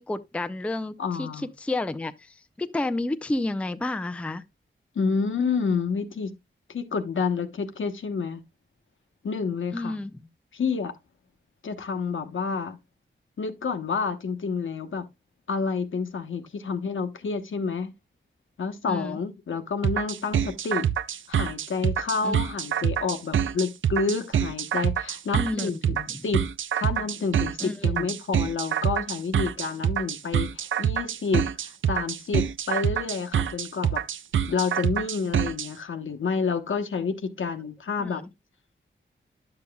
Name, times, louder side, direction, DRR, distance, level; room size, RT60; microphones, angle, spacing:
voice 1, 0.0-1.3 1.6-4.4 9.7-10.2 18.9-19.2 22.2-22.4 25.3-26.2 27.6-28.1 38.0-38.3, left 2 dB, 5° left, 0.4 m, -31 dB
voice 2, 1.0-1.5 4.9-6.4 6.7-8.4 9.2-10.0 10.5-10.9 11.6-12.8 13.4-15.0 15.5-17.9 18.6-20.9 21.3-26.5 26.8-34.0 34.5-38.2, left 5 dB, 75° left, 1.0 m, -29 dB
sound 1, 19.8-35.7, right 9 dB, 75° right, 0.4 m, -26 dB
10.5 x 6.9 x 2.2 m
wide cardioid pair, 125°, 20 cm